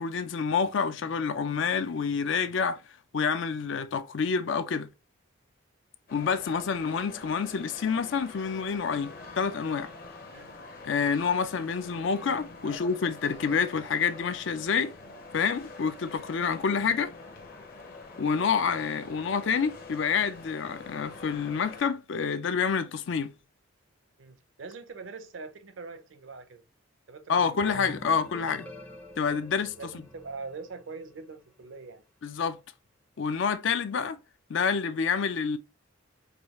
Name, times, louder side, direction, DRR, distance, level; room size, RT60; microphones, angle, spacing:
voice 1, 0.0-2.8 3.1-4.9 6.1-9.9 10.8-14.9 15.3-17.1 18.2-23.3 27.3-28.7 29.2-29.8 32.2-32.6 33.2-34.2 34.5-35.6, left 6 dB, 65° left, 0.4 m, -28 dB
sound 1, 6.1-21.8, left 3 dB, 45° left, 0.8 m, -46 dB
voice 2, 24.2-26.6 27.1-27.6 29.8-32.0, right 4 dB, 65° right, 0.6 m, -43 dB
sound 2, 27.6-31.3, left 1 dB, 5° left, 0.5 m, -47 dB
4.8 x 2.3 x 3.0 m
head